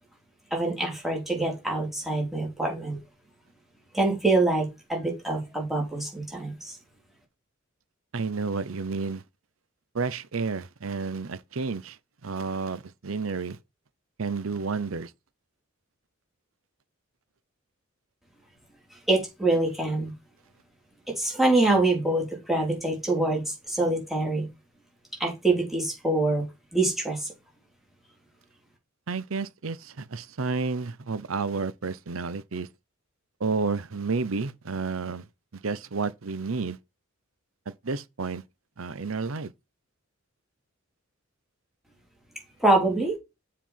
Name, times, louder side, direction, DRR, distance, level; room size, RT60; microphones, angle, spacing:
voice 1, 0.5-3.0 3.9-6.8 19.1-20.1 21.1-24.5 25.2-26.5 26.7-27.3 42.6-43.2, right 2 dB, ahead, 3.6 m, -25 dB
voice 2, 8.1-9.2 9.9-13.6 14.2-15.1 29.1-32.7 33.4-35.2 35.5-36.8 37.7-38.4 38.8-39.5, right 4 dB, 70° right, 0.7 m, -31 dB
7.2 x 4.5 x 5.7 m
head